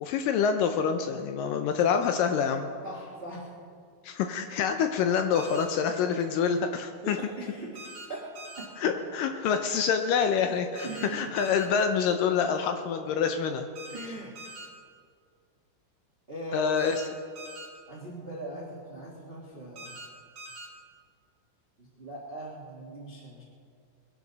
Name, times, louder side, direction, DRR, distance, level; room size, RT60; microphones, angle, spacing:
voice 1, 0.0-2.7 4.0-7.2 8.8-13.7 16.5-17.0, left 7 dB, 75° left, 6 dB, 2.1 m, -26 dB
voice 2, 2.8-3.5 7.0-8.3 8.6-8.7 10.8-11.3 13.9-14.3 16.3-16.9 17.9-20.0 22.0-23.4, right 1 dB, 65° right, -3 dB, 0.5 m, -39 dB
sound 1, 5.3-5.6 7.7-8.1 8.3-8.7 10.8-11.1 11.4-11.7 13.8-14.1 14.4-14.7 16.8-17.1 17.4-17.7 19.8-20.1 20.4-20.7, right 2 dB, 35° right, 3.6 m, -43 dB
22.0 x 11.5 x 4.0 m, 2.2 s
omnidirectional pair, 4.4 m